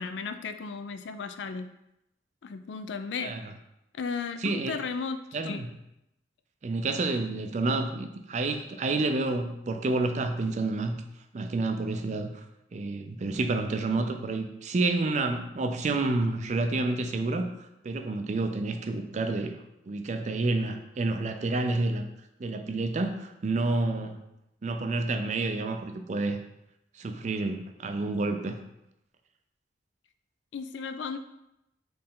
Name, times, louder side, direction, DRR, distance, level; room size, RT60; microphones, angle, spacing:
voice 1, 0.0-1.7 2.4-3.4 4.0-5.6 7.7-7.8 30.5-31.2, left 5 dB, 75° left, 10 dB, 0.4 m, -35 dB
voice 2, 4.4-4.8 5.3-5.7 6.6-11.0 11.3-12.4 12.7-19.6 19.9-22.0 22.4-24.2 24.6-26.4 27.0-28.6, right 2 dB, 40° right, 7 dB, 0.4 m, -29 dB
4.3 x 3.2 x 3.7 m, 0.85 s
head